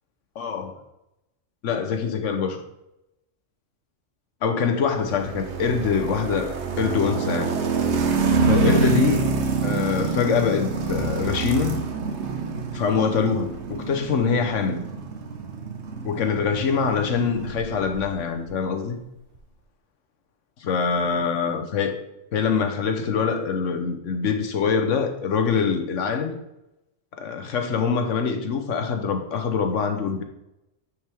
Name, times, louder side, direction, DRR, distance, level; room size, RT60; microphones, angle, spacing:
voice 1, 0.4-0.7 1.6-2.6 4.4-7.6 8.4-9.3 9.6-11.8 12.7-14.9 16.0-19.0 20.6-22.0 22.3-26.4 27.2-30.2, left 6 dB, 75° left, 6 dB, 1.2 m, -24 dB
sound 1, 5.0-18.1, right 5 dB, 65° right, 1.1 m, -26 dB
9.3 x 4.9 x 3.5 m, 0.89 s
omnidirectional pair, 1.3 m